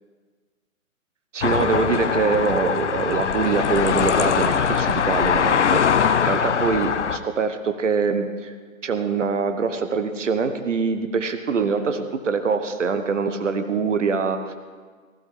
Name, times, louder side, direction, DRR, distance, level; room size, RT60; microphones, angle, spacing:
voice 1, 1.3-8.5 8.8-14.5, right 5 dB, 55° right, 8 dB, 1.2 m, -24 dB
sound 1, 1.4-7.2, left 7 dB, 55° left, 0.7 m, -21 dB
15.5 x 15.5 x 3.7 m, 1.5 s
figure-of-eight pair, 140°, 43 cm